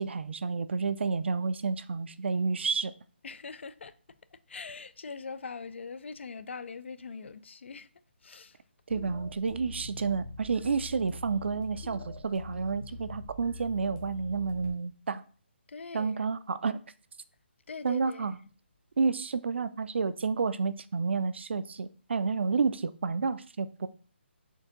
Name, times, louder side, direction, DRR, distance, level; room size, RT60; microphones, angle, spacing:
voice 1, 0.0-2.9 8.9-15.2 15.9-16.8 17.8-18.4 19.0-23.9, right 5 dB, 70° right, 0.4 m, -30 dB
voice 2, 3.2-4.2 4.5-7.9 8.2-8.6 15.7-16.2 17.7-18.3, left 5 dB, 75° left, 0.4 m, -42 dB
sound 1, 8.9-14.7, left 2 dB, 40° left, 1.1 m, -44 dB
4.5 x 2.6 x 3.7 m
hypercardioid pair, 170°, 6 cm